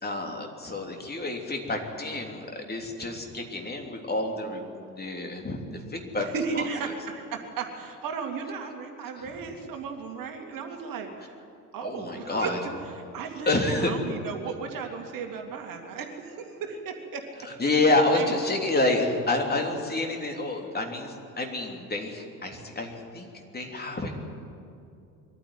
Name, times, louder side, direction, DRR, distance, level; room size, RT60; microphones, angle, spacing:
voice 1, 0.0-6.7 11.8-12.6 13.4-13.9 17.4-24.4, left 2 dB, 20° left, 2 dB, 3.2 m, -28 dB
voice 2, 6.3-11.3 11.7-12.5 12.9-17.6 18.1-18.3, right 5 dB, 40° right, 4 dB, 2.4 m, -35 dB
22.5 x 14.5 x 9.5 m, 2.5 s
figure-of-eight pair, 65°, 49 cm